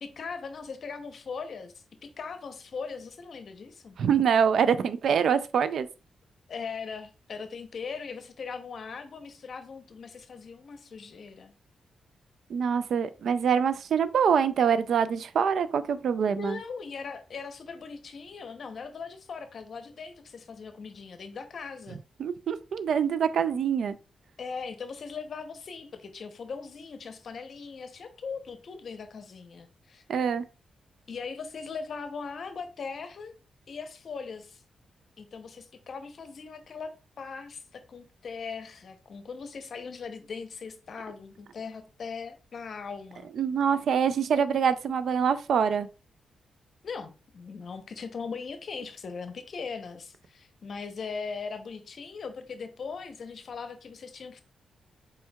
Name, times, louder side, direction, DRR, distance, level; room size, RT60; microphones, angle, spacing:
voice 1, 0.0-4.0 6.5-11.5 16.3-22.0 24.4-30.0 31.1-33.3 33.7-34.6 35.2-43.3 46.8-54.4, left 5 dB, 60° left, 0.7 m, -39 dB
voice 2, 4.0-5.9 12.5-16.6 22.2-23.9 30.1-30.4 43.4-45.9, right 7 dB, 70° right, 0.3 m, -25 dB
4.5 x 4.4 x 2.3 m
cardioid pair, 90°, 0 cm